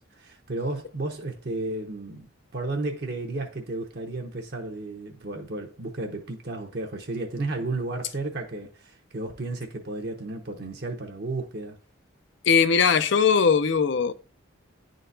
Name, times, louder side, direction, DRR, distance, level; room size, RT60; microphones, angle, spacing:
voice 1, 0.1-11.8, right 2 dB, 50° right, 0.9 m, -33 dB
voice 2, 12.5-14.1, left 6 dB, 60° left, 0.5 m, -20 dB
10.0 x 3.9 x 2.6 m
head